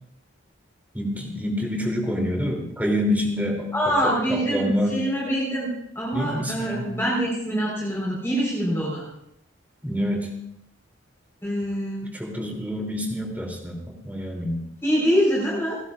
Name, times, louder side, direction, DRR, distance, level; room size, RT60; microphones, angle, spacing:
voice 1, 0.9-3.7 4.3-5.0 6.1-6.9 9.8-10.3 12.1-14.6, equal, 10° right, -1 dB, 3.0 m, -27 dB
voice 2, 3.7-9.1 11.4-12.2 14.8-15.8, equal, 10° left, -5 dB, 4.3 m, -25 dB
29.0 x 11.0 x 2.5 m, 0.78 s
head